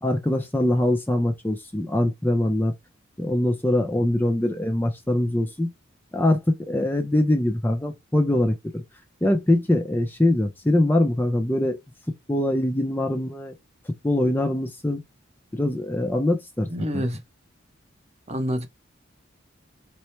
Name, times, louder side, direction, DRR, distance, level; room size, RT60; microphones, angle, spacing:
voice 1, 0.0-2.7 3.2-5.7 6.1-8.8 9.2-11.8 12.3-13.5 14.0-15.0 15.5-17.0, left 1 dB, 10° left, 0.5 m, -23 dB
voice 2, 16.7-17.2 18.3-18.7, equal, 30° right, 0.7 m, -27 dB
4.3 x 2.1 x 3.2 m
head